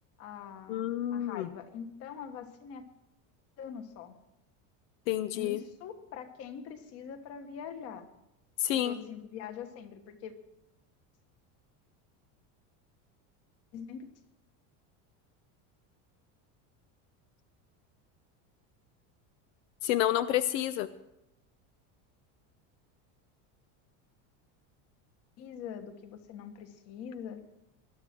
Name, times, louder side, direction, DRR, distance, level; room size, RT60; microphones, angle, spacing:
voice 1, 0.2-2.8 3.6-4.1 5.3-8.1 8.7-10.3 13.7-14.1 25.4-27.4, left 7 dB, 40° left, 9 dB, 1.5 m, -43 dB
voice 2, 0.7-1.5 5.1-5.6 8.6-9.0 19.8-20.9, left 12 dB, 80° left, 13 dB, 0.9 m, -29 dB
20.5 x 12.5 x 4.5 m, 0.87 s
cardioid pair, 180°, 39 cm